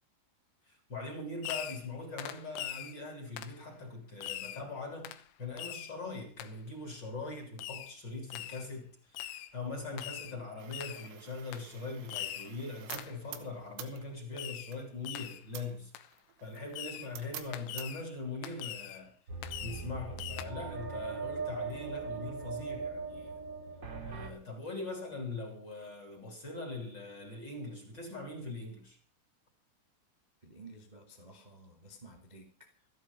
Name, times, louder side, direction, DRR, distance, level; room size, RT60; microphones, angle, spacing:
voice 1, 0.6-15.9 16.4-19.1 19.6-23.3 24.0-29.0, left 3 dB, 25° left, 3.2 m, -42 dB
Fireworks, 1.4-1.9 2.2-3.0 3.4-3.6 4.2-4.6 5.0-5.2 5.6-5.9 6.4-6.5 7.6-7.9 8.3-8.7 9.1-9.5 10.0-10.4 10.7-11.1 11.5-11.7 12.1-12.5 12.9-13.2 14.4-14.8 15.0-15.4 15.9-16.1 16.7-17.1 17.5-18.1 18.4-19.0 19.4-19.9 20.2-20.5, left 13 dB, 80° left, 3.5 m, -42 dB
sound 1, 10.6-18.1, right 11 dB, 85° right, 4.1 m, -50 dB
sound 2, 19.3-24.3, right 5 dB, 55° right, 1.2 m, -40 dB
voice 2, 30.4-32.9, right 2 dB, 70° right, 0.4 m, -53 dB
14.0 x 12.5 x 5.4 m
omnidirectional pair, 5.7 m